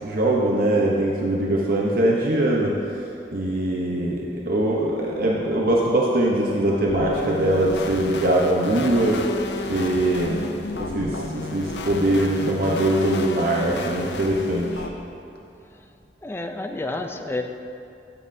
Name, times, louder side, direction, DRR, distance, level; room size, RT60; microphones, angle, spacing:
voice 1, 0.0-2.8 3.3-9.3 9.7-10.5 10.8-14.9, right 1 dB, 55° right, -3 dB, 0.8 m, -22 dB
voice 2, 5.2-5.6 16.2-17.4, left 2 dB, 15° left, 5 dB, 0.4 m, -30 dB
sound 1, 6.9-14.9, left 3 dB, 70° left, 0.5 m, -32 dB
13.5 x 7.5 x 2.7 m, 2.6 s
head